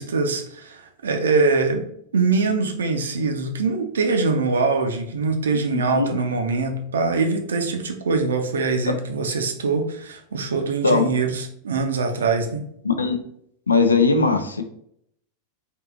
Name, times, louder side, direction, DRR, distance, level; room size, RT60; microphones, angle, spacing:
voice 1, 0.0-1.9 2.1-12.7, right 4 dB, 65° right, 4 dB, 0.5 m, -23 dB
voice 2, 5.5-6.1 10.8-11.1 12.8-13.2 13.7-14.6, left 4 dB, 75° left, 7 dB, 0.4 m, -19 dB
3.4 x 2.4 x 2.4 m, 0.68 s
figure-of-eight pair, 90°, 0 cm